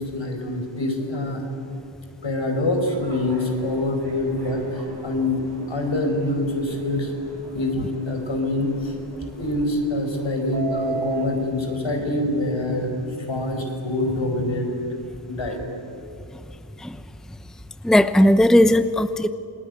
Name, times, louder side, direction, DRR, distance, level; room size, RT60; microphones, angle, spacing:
voice 1, 0.0-1.5 2.2-7.1 7.5-8.9 9.3-14.7 15.3-15.6, left 1 dB, 70° left, 4 dB, 5.3 m, -25 dB
Subway metro underground, 2.8-11.2, right 4 dB, 55° right, 7.8 m, -37 dB
voice 2, 17.8-19.3, left 1 dB, ahead, 12 dB, 0.8 m, -17 dB
28.0 x 20.5 x 9.6 m, 2.5 s
wide cardioid pair, 65°, 46 cm